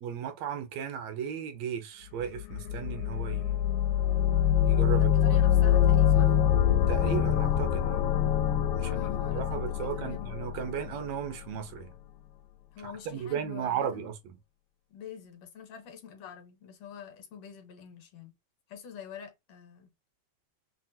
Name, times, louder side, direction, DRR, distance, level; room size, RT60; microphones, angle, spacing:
voice 1, 0.0-3.6 4.6-5.4 6.9-8.1 8.5-9.0 9.3-11.9 12.8-14.4, right 8 dB, 75° right, 1.9 m, -35 dB
sound 1, 2.3-11.2, left 10 dB, 90° left, 2.0 m, -25 dB
voice 2, 4.9-6.3 8.8-10.5 12.7-14.1 14.9-18.3 18.7-19.9, left 7 dB, 65° left, 2.1 m, -46 dB
6.1 x 2.0 x 2.7 m
omnidirectional pair, 3.3 m